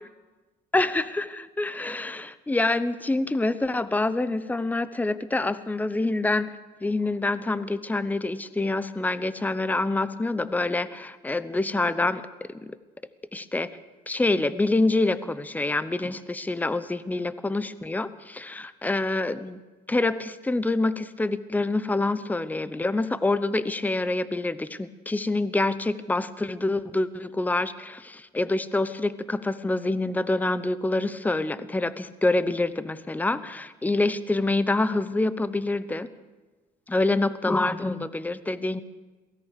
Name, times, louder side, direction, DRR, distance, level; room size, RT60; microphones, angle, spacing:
voice 1, 0.7-6.5 6.8-12.8 13.3-13.7 14.1-19.6 19.9-36.1 36.9-38.8, left 2 dB, 10° left, 14 dB, 0.9 m, -26 dB
22.5 x 17.5 x 6.7 m, 1.2 s
cardioid pair, 110°, 17 cm